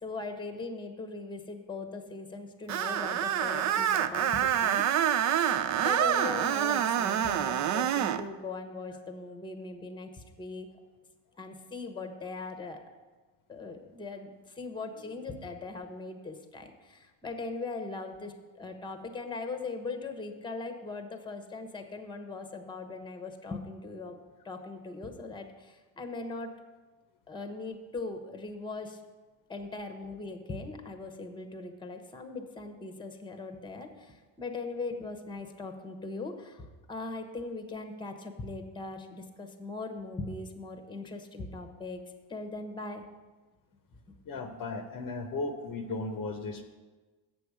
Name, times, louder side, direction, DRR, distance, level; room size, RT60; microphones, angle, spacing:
voice 1, 0.0-5.2 5.8-10.7 11.4-12.8 13.5-14.3 14.5-24.2 24.4-26.5 27.3-29.0 29.5-42.0 42.3-43.0, left 3 dB, 10° left, 6 dB, 0.9 m, -40 dB
Screech, 2.7-8.2, right 10 dB, 40° right, 0.4 m, -27 dB
voice 2, 44.3-46.6, left 3 dB, 45° left, 6 dB, 0.8 m, -36 dB
7.5 x 7.0 x 4.8 m, 1.3 s
supercardioid pair, 85°, 46 cm